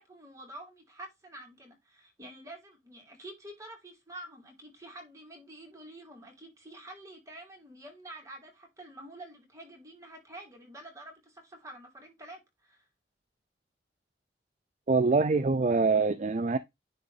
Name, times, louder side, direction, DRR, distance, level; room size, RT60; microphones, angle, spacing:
voice 1, 0.0-12.9, right 1 dB, 20° right, 3.1 m, -48 dB
voice 2, 14.9-16.6, right 4 dB, 40° right, 0.5 m, -24 dB
9.9 x 3.6 x 4.0 m
head